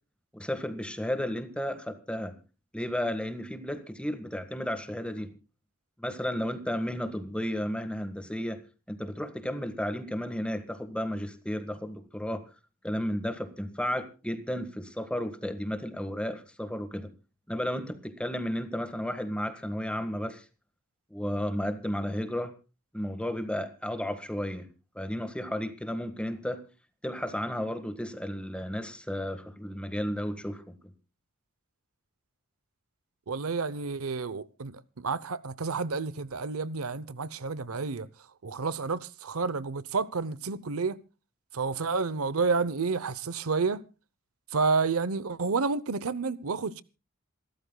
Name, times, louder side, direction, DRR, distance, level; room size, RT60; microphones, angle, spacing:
voice 1, 0.3-2.3 2.7-5.3 6.0-8.6 8.9-12.4 12.8-17.1 17.5-20.4 21.1-22.5 22.9-24.7 24.9-26.6 27.0-30.9, equal, 5° left, 1.6 m, -33 dB
voice 2, 33.3-38.1 38.4-41.0 41.5-43.8 44.5-46.8, right 4 dB, 85° right, 0.8 m, -30 dB
27.5 x 13.0 x 2.3 m
head